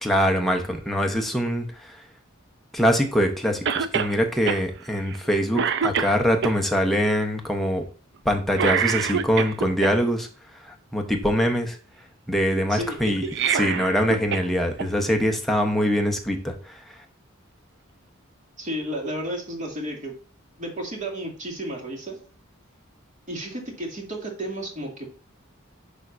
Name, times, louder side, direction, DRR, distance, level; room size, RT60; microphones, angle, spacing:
voice 1, 0.0-1.6 2.7-7.8 8.2-10.3 10.9-11.8 12.3-13.2 13.6-16.5, equal, ahead, 2 dB, 1.0 m, -23 dB
Cough, 3.7-4.1 4.5-4.6 5.1-5.3 5.6-6.5 8.5-9.9 13.2-14.5 14.8-14.9 16.0-16.1, right 7 dB, 60° right, 0.5 m, -25 dB
voice 2, 12.7-13.3 18.6-20.1 20.6-22.2 23.3-25.1, right 1 dB, 40° right, -1 dB, 2.3 m, -32 dB
10.5 x 3.6 x 2.7 m, 0.39 s
head